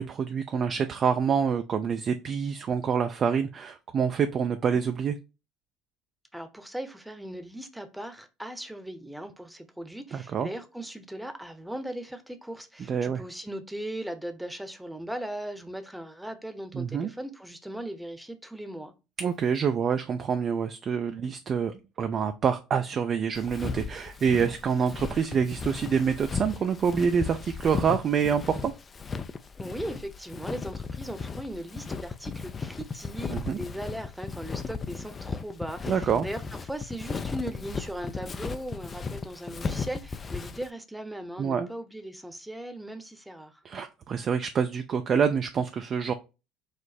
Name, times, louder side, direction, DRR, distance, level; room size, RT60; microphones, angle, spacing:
voice 1, 0.0-5.2 10.1-10.5 12.9-13.2 16.7-17.1 19.2-28.7 33.3-33.6 35.9-36.3 41.4-41.7 43.6-46.1, right 7 dB, 40° right, 0.4 m, -27 dB
voice 2, 6.3-18.9 29.6-43.6, right 1 dB, 5° right, 0.8 m, -38 dB
Walk footsteps, 23.4-40.7, left 5 dB, 30° left, 0.4 m, -36 dB
4.9 x 2.0 x 4.2 m
hypercardioid pair, 65°, 0 cm